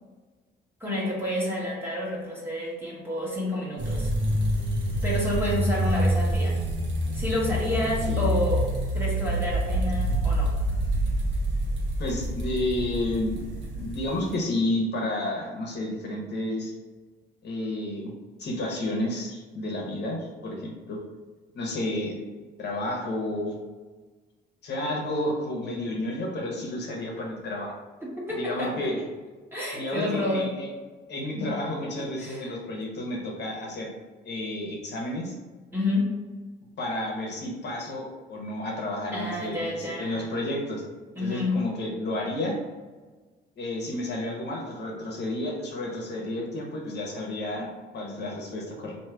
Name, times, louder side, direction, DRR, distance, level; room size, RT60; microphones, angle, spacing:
voice 1, 0.8-4.1 5.0-6.6 7.1-10.5 28.0-28.8 29.5-30.6 31.3-31.5 32.0-32.5 35.7-36.2 39.1-40.3 41.1-41.7, left 1 dB, 10° right, -5 dB, 1.5 m, -29 dB
sound 1, 3.8-14.3, right 1 dB, 70° right, 1.0 m, -27 dB
voice 2, 7.8-8.2 12.0-16.8 17.4-18.1 18.4-20.2 20.4-21.0 21.5-22.2 22.6-23.6 24.6-27.8 28.3-29.0 29.7-30.7 31.1-33.9 34.2-35.3 36.8-40.8 41.2-42.6 43.6-47.7 47.9-49.0, left 1 dB, 60° left, -1 dB, 1.0 m, -31 dB
3.1 x 2.7 x 4.5 m, 1.3 s
cardioid pair, 90°, 20 cm